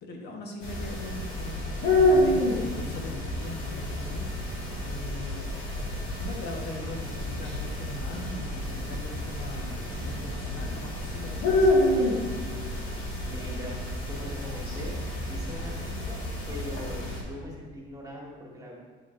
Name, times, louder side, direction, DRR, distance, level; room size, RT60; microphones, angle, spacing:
voice 1, 0.0-4.3 4.8-5.5 6.2-11.8, left 1 dB, 55° left, 1 dB, 1.2 m, -40 dB
sound 1, 0.6-17.2, left 1 dB, 90° left, 1.9 m, -29 dB
voice 2, 13.1-13.7 14.1-15.0 15.3-18.7, equal, 15° right, -3 dB, 1.4 m, -41 dB
8.1 x 7.0 x 2.5 m, 1.5 s
cardioid pair, 140°, 21 cm